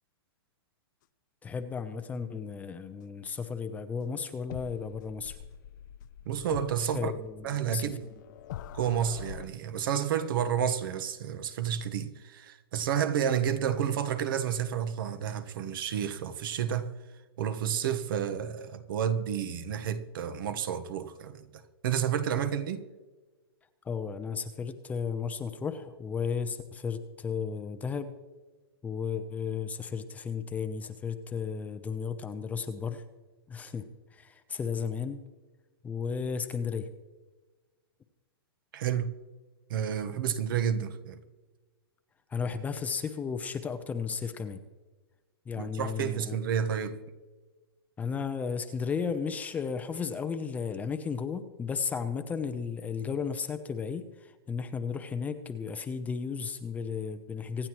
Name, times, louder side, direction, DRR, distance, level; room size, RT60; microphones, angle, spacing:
voice 1, 1.4-5.4 6.9-7.8 23.8-28.1 28.8-33.0 33.5-33.8 34.1-35.2 35.8-36.9 42.3-44.6 45.5-46.4 48.0-57.7, left 6 dB, 10° left, 0.7 m, -34 dB
sound 1, 4.5-9.5, left 10 dB, 50° left, 0.6 m, -44 dB
voice 2, 6.2-7.1 7.4-8.0 8.7-16.9 17.4-22.9 38.7-39.1 39.7-41.2 45.6-47.0, right 8 dB, 55° right, 1.2 m, -30 dB
25.0 x 9.9 x 3.1 m
hypercardioid pair, 145°, 13 cm